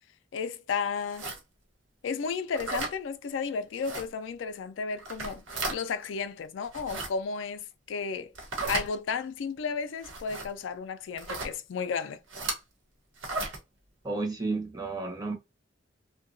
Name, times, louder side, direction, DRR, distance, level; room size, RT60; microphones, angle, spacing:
voice 1, 0.3-1.3 2.0-5.4 5.7-8.3 8.7-12.2, left 5 dB, 75° left, 0.3 m, -33 dB
sound 1, 1.1-1.4 2.5-2.9 3.8-4.0 5.0-5.8 6.6-7.1 8.3-8.9 10.0-10.5 11.2-11.5 12.3-12.6 13.2-13.6, right 3 dB, 90° right, 1.0 m, -34 dB
voice 2, 14.0-15.3, right 3 dB, 20° right, 0.7 m, -32 dB
2.8 x 2.2 x 2.5 m
head